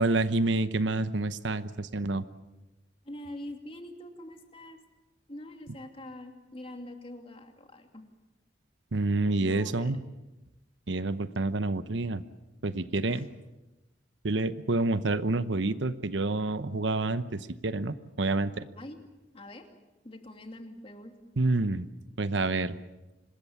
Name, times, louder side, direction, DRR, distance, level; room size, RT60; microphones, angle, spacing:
voice 1, 0.0-2.2 8.9-10.0 10.9-12.2 12.6-13.3 14.2-18.6 21.4-21.9 22.2-22.8, right 2 dB, 75° right, 13 dB, 1.0 m, -28 dB
voice 2, 3.0-4.8 5.3-8.0 9.4-10.1 13.1-13.3 18.8-19.0 19.3-19.7 20.0-21.1, left 1 dB, 30° left, 4 dB, 2.7 m, -44 dB
25.5 x 21.0 x 7.3 m, 1.0 s
head